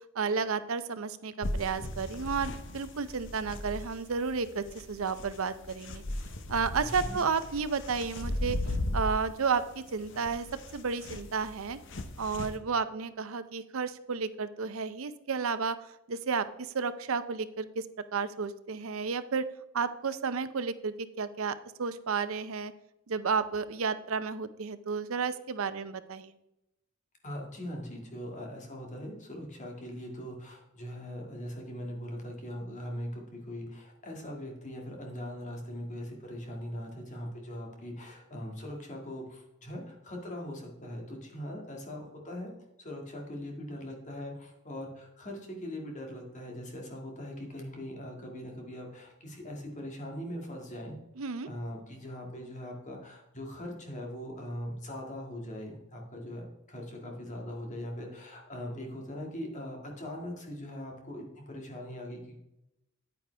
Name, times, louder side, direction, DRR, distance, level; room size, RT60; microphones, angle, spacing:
voice 1, 0.2-6.0 6.5-8.6 8.9-10.5 10.7-11.8 12.2-15.8 16.1-17.9 18.1-19.5 19.7-22.7 23.1-26.3 51.2-51.5, right 5 dB, 80° right, 13 dB, 0.6 m, -32 dB
sound 1, 1.4-12.6, left 1 dB, 60° left, 0.9 m, -37 dB
voice 2, 27.2-42.5 42.8-51.0 51.4-62.4, equal, 35° left, 0 dB, 2.1 m, -41 dB
9.2 x 9.2 x 3.4 m, 0.89 s
head